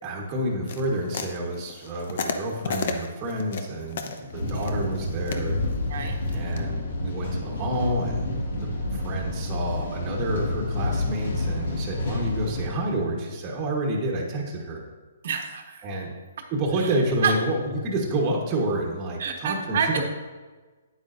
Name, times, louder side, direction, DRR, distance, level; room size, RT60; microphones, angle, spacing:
voice 1, 0.0-5.6 6.3-8.3 8.6-14.8 15.8-16.1 16.5-20.0, right 1 dB, 25° right, -1 dB, 1.3 m, -29 dB
sound 1, 0.7-6.6, left 4 dB, 55° left, 0.8 m, -33 dB
sound 2, 4.3-12.7, left 2 dB, 70° left, 2.2 m, -29 dB
voice 2, 15.2-15.8 17.2-17.3 19.2-20.0, right 6 dB, 55° right, 4 dB, 1.2 m, -27 dB
9.1 x 8.9 x 2.6 m, 1.3 s
hypercardioid pair, 160°, 0 cm